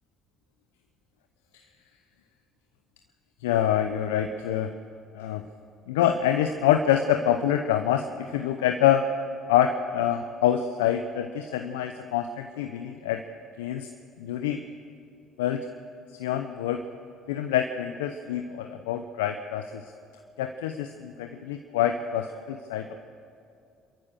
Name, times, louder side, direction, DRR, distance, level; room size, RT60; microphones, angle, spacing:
voice 1, 3.4-4.7 5.1-5.4 5.9-9.1 9.5-13.2 13.6-13.9 14.2-14.6 15.4-15.7 16.2-16.8 17.3-19.8 20.4-22.9, left 10 dB, 85° left, 6 dB, 0.8 m, -26 dB
28.5 x 13.5 x 6.7 m, 2.5 s
hypercardioid pair, 55°, 0 cm